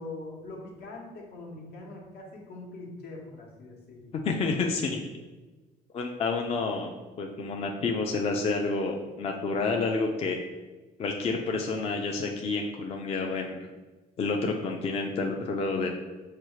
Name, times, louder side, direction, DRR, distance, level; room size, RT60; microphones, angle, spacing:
voice 1, 0.0-4.1, left 2 dB, 75° left, 0 dB, 1.1 m, -42 dB
voice 2, 4.1-5.0 5.9-10.4 11.0-13.6 14.2-15.9, left 3 dB, 35° left, 2 dB, 0.4 m, -29 dB
5.8 x 2.4 x 3.1 m, 1.2 s
cardioid pair, 110°, 17 cm